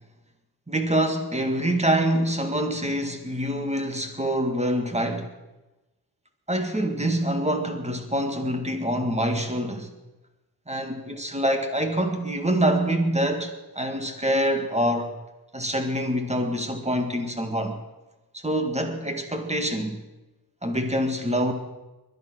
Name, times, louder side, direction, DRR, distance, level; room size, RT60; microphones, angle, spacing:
voice 1, 0.7-5.3 6.5-9.9 10.7-15.1 15.5-17.8 18.3-20.0 20.6-21.5, right 1 dB, 15° right, 2.0 m, -25 dB
21.0 x 11.0 x 6.3 m
wide cardioid pair, 115°, 39 cm